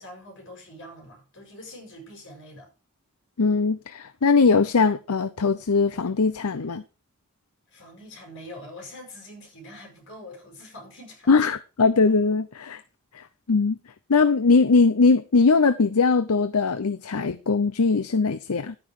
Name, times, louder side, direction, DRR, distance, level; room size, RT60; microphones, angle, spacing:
voice 1, 0.0-2.7 7.7-11.4, left 1 dB, 55° left, 7.2 m, -44 dB
voice 2, 3.4-6.8 11.3-12.8 13.1-13.8 14.1-18.8, left 4 dB, 75° left, 0.7 m, -21 dB
12.0 x 9.7 x 4.9 m
head